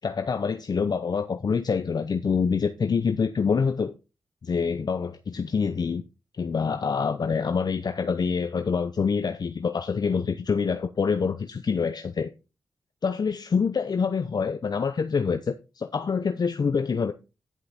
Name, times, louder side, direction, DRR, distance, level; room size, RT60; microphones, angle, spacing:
voice 1, 0.0-3.9 4.4-6.0 6.4-12.3 13.0-17.1, left 5 dB, 55° left, 0.7 m, -26 dB
10.5 x 5.7 x 4.3 m
cardioid pair, 45°, 8 cm